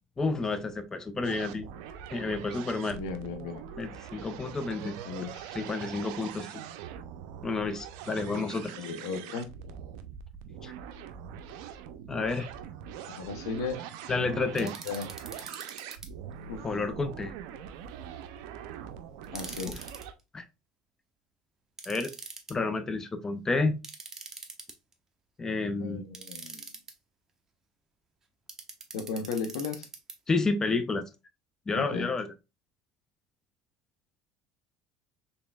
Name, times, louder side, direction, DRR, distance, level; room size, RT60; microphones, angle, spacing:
voice 1, 0.2-1.7 2.1-3.0 3.8-5.0 5.5-6.5 7.4-8.7 10.6-10.7 12.1-12.5 14.1-14.7 16.6-17.3 19.7-19.8 20.3-20.5 21.9-22.1 22.5-23.8 25.4-26.1 30.3-31.0 31.7-32.3, left 3 dB, 20° left, 0.5 m, -30 dB
sound 1, 1.2-20.1, right 9 dB, 75° right, 0.4 m, -43 dB
voice 2, 2.9-3.7 5.0-5.6 8.3-8.5 8.7-9.5 13.1-13.8 14.2-15.1 16.5-16.6 19.3-19.8 25.8-26.7 28.9-29.9 31.7-32.1, left 5 dB, 80° left, 0.7 m, -36 dB
sound 2, 14.6-16.1 19.2-20.0 21.8-22.5 23.8-24.9 26.1-26.9 28.5-30.1, right 4 dB, 20° right, 0.9 m, -43 dB
4.2 x 3.4 x 2.3 m
supercardioid pair, 90°, 2 cm